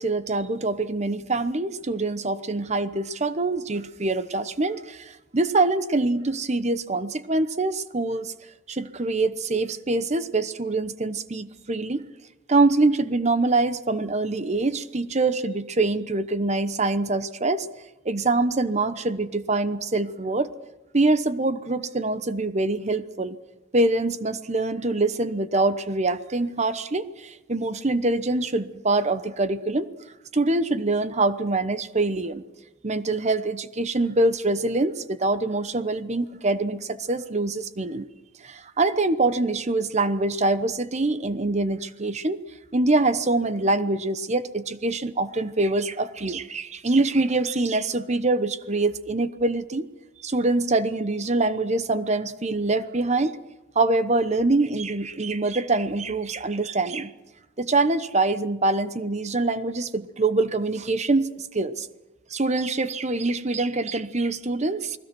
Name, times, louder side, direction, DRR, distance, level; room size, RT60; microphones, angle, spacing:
voice 1, 0.0-8.3 8.7-12.0 12.5-17.7 18.0-20.5 20.9-23.4 23.7-29.9 30.3-32.4 32.8-38.1 38.4-42.4 42.7-49.9 50.2-53.3 53.7-57.1 57.6-61.9 62.3-65.0, right 2 dB, 35° right, 12 dB, 0.9 m, -24 dB
29.5 x 20.0 x 6.2 m, 1.0 s
head